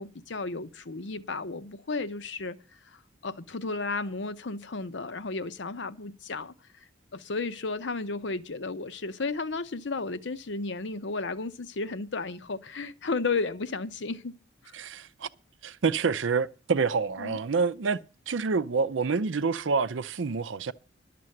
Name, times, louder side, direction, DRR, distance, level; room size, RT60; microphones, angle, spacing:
voice 1, 0.0-2.6 2.9-6.8 7.1-14.3 14.6-14.8 17.2-17.4, left 3 dB, 70° left, 0.7 m, -33 dB
voice 2, 14.7-15.3 15.6-20.7, right 5 dB, 75° right, 0.5 m, -27 dB
12.0 x 6.8 x 7.7 m
head